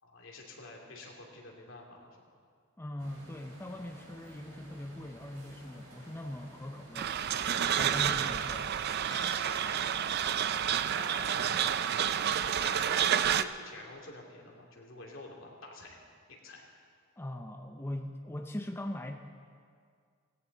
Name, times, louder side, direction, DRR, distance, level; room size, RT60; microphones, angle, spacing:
voice 1, 0.0-2.1 10.8-12.2 12.6-13.1 13.4-16.0 16.3-16.6, left 2 dB, 75° left, -1 dB, 2.7 m, -48 dB
voice 2, 2.8-7.1 7.8-8.8 17.2-19.2, left 1 dB, 10° left, 4 dB, 0.5 m, -40 dB
sound 1, 3.0-9.9, right 1 dB, 85° right, 4.3 m, -53 dB
sound 2, 6.9-13.4, right 9 dB, 50° right, 0.4 m, -29 dB
Bell, 9.1-11.2, left 2 dB, 90° left, 4.7 m, -54 dB
18.0 x 16.5 x 4.1 m, 2.1 s
head